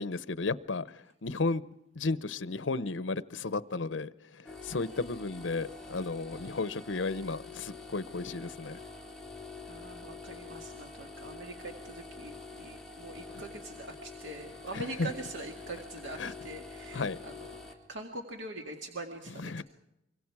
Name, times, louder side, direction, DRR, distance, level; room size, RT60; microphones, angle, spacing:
voice 1, 0.0-1.6 2.0-8.8 14.7-15.1 16.2-16.3 16.9-17.2 19.4-19.6, left 3 dB, 80° left, 0.8 m, -34 dB
sound 1, 4.4-17.7, left 3 dB, 5° left, 3.0 m, -46 dB
voice 2, 9.7-19.6, right 2 dB, 80° right, 2.0 m, -43 dB
25.0 x 24.0 x 4.8 m
head